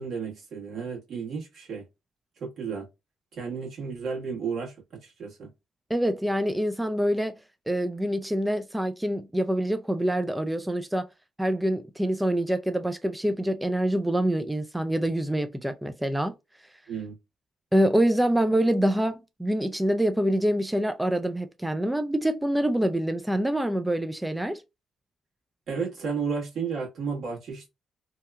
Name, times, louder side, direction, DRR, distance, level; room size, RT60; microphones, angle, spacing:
voice 1, 0.0-1.8 2.4-2.9 3.3-5.5 16.9-17.2 25.7-27.7, right 5 dB, 65° right, 1.3 m, -33 dB
voice 2, 5.9-7.3 7.7-11.1 11.4-16.3 17.7-24.6, right 1 dB, 10° right, 0.3 m, -25 dB
2.8 x 2.2 x 2.3 m
supercardioid pair, 60°, 0 cm